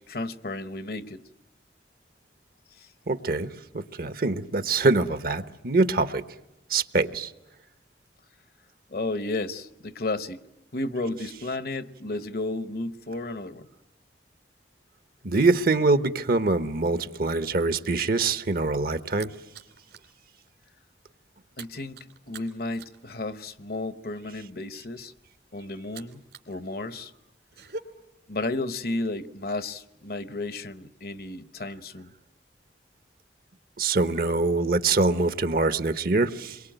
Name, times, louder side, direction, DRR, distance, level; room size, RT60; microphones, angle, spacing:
voice 1, 0.1-1.2 2.8-2.9 8.9-10.4 10.7-13.7 21.6-22.0 22.3-25.1 25.5-27.1 28.3-32.1, left 2 dB, 60° left, 1.0 m, -33 dB
voice 2, 3.1-6.2 6.7-7.3 15.2-19.3 33.8-36.6, right 3 dB, 55° right, 1.0 m, -24 dB
sound 1, 19.1-20.1 20.5-20.7 21.0-26.5 26.8-27.8, right 3 dB, 70° right, 2.7 m, -45 dB
28.5 x 22.5 x 9.2 m
head